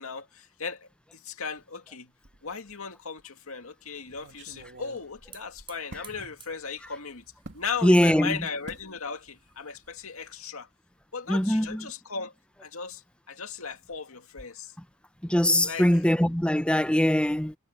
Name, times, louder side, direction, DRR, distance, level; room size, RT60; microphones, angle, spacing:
voice 1, 0.0-2.1 2.4-7.2 7.5-10.7 11.1-12.3 12.6-13.0 13.3-14.7 15.6-15.9, left 5 dB, 85° left, 2.3 m, -37 dB
sound 1, 2.2-2.8 3.2-3.3 4.1-6.1 7.4-7.7 8.7-8.9 9.3-9.6 9.9-10.0, right 2 dB, 60° right, 2.7 m, -47 dB
Hiss / Fire, 3.6-10.5, right 5 dB, 25° right, 7.5 m, -56 dB
voice 2, 7.8-8.4 11.3-11.8 15.2-17.5, equal, 5° left, 0.8 m, -22 dB
head